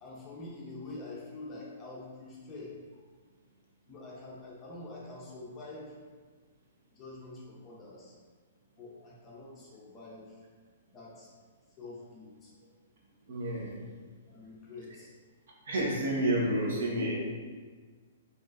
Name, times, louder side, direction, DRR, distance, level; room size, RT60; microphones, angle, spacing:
voice 1, 0.0-2.8 3.9-5.9 7.0-8.1 8.8-10.4 10.9-11.3 11.8-12.5 14.3-15.1, left 2 dB, 15° left, -5 dB, 0.6 m, -46 dB
voice 2, 13.3-13.8 15.7-17.1, right 1 dB, 60° right, -3 dB, 1.0 m, -29 dB
5.2 x 3.1 x 2.5 m, 1.5 s
hypercardioid pair, 175°, 0 cm